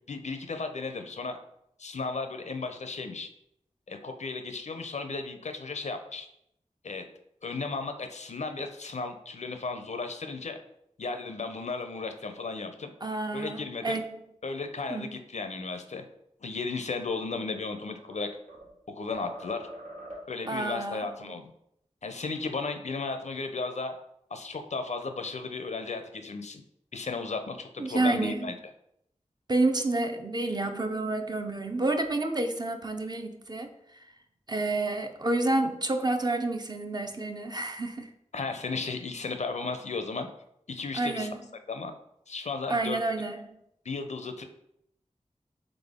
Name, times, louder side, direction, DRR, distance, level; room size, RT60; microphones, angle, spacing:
voice 1, 0.1-1.4 1.8-3.3 3.9-6.3 6.8-7.0 7.4-10.6 11.0-12.9 13.3-14.0 14.4-16.0 16.4-18.3 18.9-19.7 20.3-21.5 22.0-24.0 24.3-26.6 26.9-28.5 38.3-40.3 40.7-41.3 41.7-41.9 42.3-43.0 43.8-44.4, left 4 dB, 65° left, 7 dB, 0.5 m, -35 dB
voice 2, 13.0-14.2 14.9-15.1 20.5-21.4 27.8-28.5 29.5-33.7 34.5-38.1 40.9-41.4 42.7-43.6, right 2 dB, 35° right, 5 dB, 0.5 m, -29 dB
sound 1, 17.5-18.8 19.1-20.5, right 1 dB, 80° right, 1.3 m, -44 dB
4.0 x 3.4 x 3.5 m, 0.76 s
wide cardioid pair, 45°, 13 cm